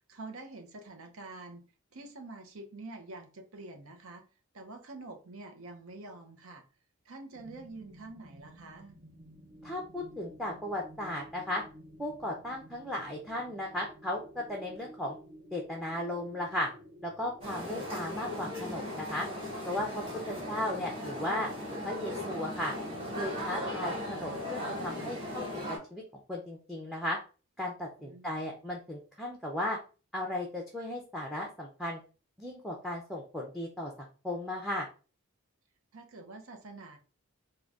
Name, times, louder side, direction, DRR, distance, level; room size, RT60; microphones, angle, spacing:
voice 1, 0.1-1.6 1.9-4.2 4.5-6.6 7.0-9.0 20.2-20.4 28.0-28.4 35.9-37.0, right 2 dB, 70° right, 3 dB, 0.7 m, -47 dB
sound 1, 7.3-25.4, equal, 40° right, 1.0 m, -52 dB
voice 2, 9.6-11.6 12.0-15.2 15.5-16.7 17.0-19.3 19.6-21.5 21.8-22.7 23.2-25.6 25.9-26.0 26.3-27.2 27.6-29.8 30.1-32.0 32.4-34.9, left 1 dB, ahead, 1 dB, 0.5 m, -36 dB
sound 2, 17.4-25.8, left 1 dB, 25° right, 1.3 m, -38 dB
3.7 x 2.2 x 3.5 m, 0.35 s
head